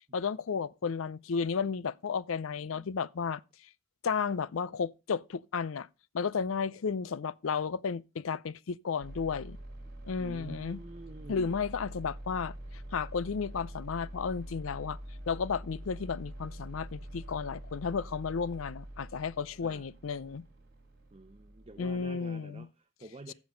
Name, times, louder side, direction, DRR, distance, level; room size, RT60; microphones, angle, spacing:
voice 1, 0.1-3.4 4.0-5.9 6.1-9.6 10.1-10.8 11.3-12.5 12.9-15.0 15.3-20.4 21.8-22.7, left 5 dB, 70° left, 0.5 m, -33 dB
sound 1, 9.0-22.1, right 1 dB, 55° right, 3.6 m, -45 dB
voice 2, 10.2-11.6 19.6-19.8 21.1-23.3, right 2 dB, 30° right, 0.8 m, -48 dB
15.0 x 6.2 x 5.1 m
head